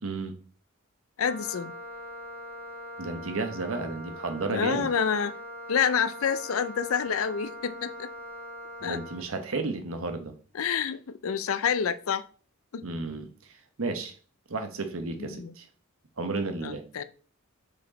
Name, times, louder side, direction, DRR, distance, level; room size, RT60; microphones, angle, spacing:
voice 1, 0.0-0.4 3.0-4.9 8.8-10.3 12.8-14.1 14.5-15.7 16.2-16.8, right 3 dB, 70° right, 1.0 m, -33 dB
voice 2, 1.2-1.7 4.5-5.4 5.7-8.1 8.8-9.0 10.5-12.2 12.7-12.8 15.2-15.5 16.6-17.0, left 7 dB, 70° left, 0.5 m, -28 dB
Wind instrument woodwind instrument, 1.3-9.3, equal, 45° right, 1.0 m, -42 dB
5.2 x 4.9 x 4.2 m
head